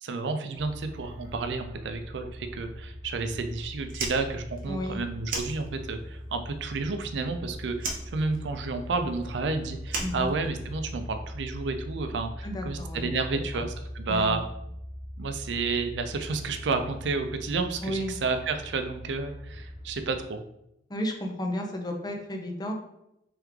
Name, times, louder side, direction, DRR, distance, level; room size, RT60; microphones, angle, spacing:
voice 1, 0.0-14.4 15.2-20.5, right 3 dB, 80° right, 7 dB, 0.4 m, -31 dB
sound 1, 0.5-20.2, equal, 45° left, 1.3 m, -41 dB
Fire, 3.8-6.1 6.4-7.4 7.7-10.9, right 3 dB, 50° right, 0.8 m, -36 dB
voice 2, 4.7-5.0 10.0-10.3 12.4-13.1 13.3-13.6 14.1-14.4 17.8-18.1 20.9-22.7, equal, 25° left, 3 dB, 0.6 m, -33 dB
3.4 x 3.2 x 3.5 m, 0.81 s
head